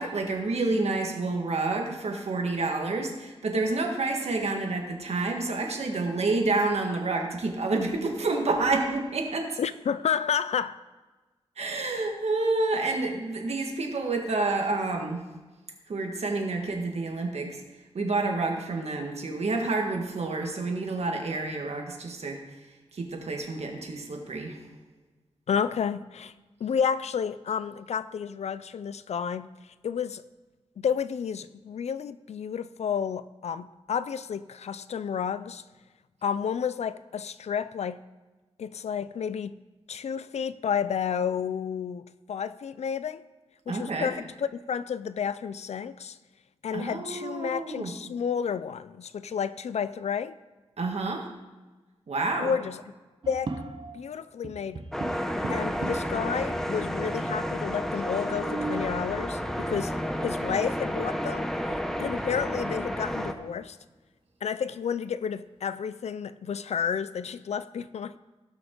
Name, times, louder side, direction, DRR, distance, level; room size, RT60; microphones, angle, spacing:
voice 1, 0.0-9.6 11.6-15.2 15.9-17.6 17.9-22.4 22.9-24.6 43.7-44.1 46.7-47.9 50.8-51.3 52.1-52.6, right 3 dB, 75° right, 1.6 m, -29 dB
voice 2, 9.6-10.8 25.5-26.3 26.6-29.5 29.8-30.2 30.8-35.6 36.2-38.0 38.6-39.6 39.9-43.2 43.7-46.2 46.6-50.3 52.4-52.9 53.3-53.5 53.9-54.8 55.5-59.9 60.2-63.8 64.4-68.2, left 7 dB, 85° left, 0.4 m, -31 dB
sound 1, 53.2-54.1 54.4-56.2 57.0-57.1 57.3-57.4 58.1-59.0 60.7-60.8 61.3-61.8 62.2-62.3 62.8-63.7, right 3 dB, 50° right, 1.0 m, -38 dB
sound 2, 54.9-63.3, equal, 5° left, 0.8 m, -31 dB
17.5 x 6.0 x 3.8 m
wide cardioid pair, 95°, 11 cm